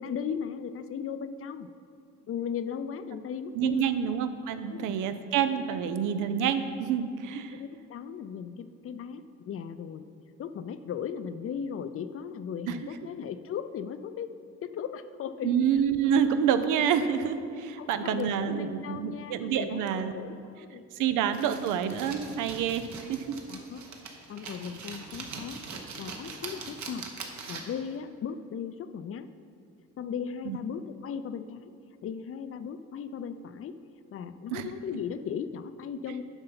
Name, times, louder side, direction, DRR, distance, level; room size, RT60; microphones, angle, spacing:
voice 1, 0.0-1.7 2.3-4.1 4.7-4.9 7.5-10.0 10.4-14.3 14.6-15.5 17.8-21.1 23.5-23.8 24.3-25.6 26.0-27.1 27.5-29.3 30.0-31.7 32.0-33.8 34.1-36.2, left 7 dB, 50° left, 12 dB, 0.5 m, -37 dB
voice 2, 3.5-7.6 12.7-12.8 15.4-20.1 21.0-23.4 30.5-30.6 34.5-34.7, right 8 dB, 90° right, 10 dB, 0.6 m, -28 dB
sound 1, 21.3-27.9, right 5 dB, 65° right, 1.1 m, -42 dB
8.0 x 5.4 x 5.7 m, 2.4 s
cardioid pair, 90°, 30 cm